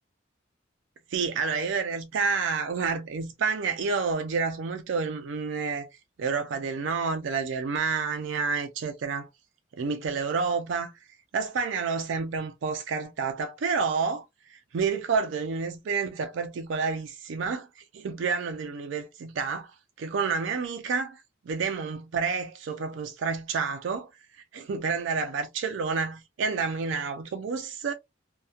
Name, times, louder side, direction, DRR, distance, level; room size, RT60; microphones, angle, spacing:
voice 1, 1.1-5.9 6.2-9.3 9.7-10.9 11.3-14.2 14.5-17.7 17.9-24.1 24.5-27.9, right 5 dB, 70° right, 0.4 m, -29 dB
2.7 x 2.1 x 2.3 m
head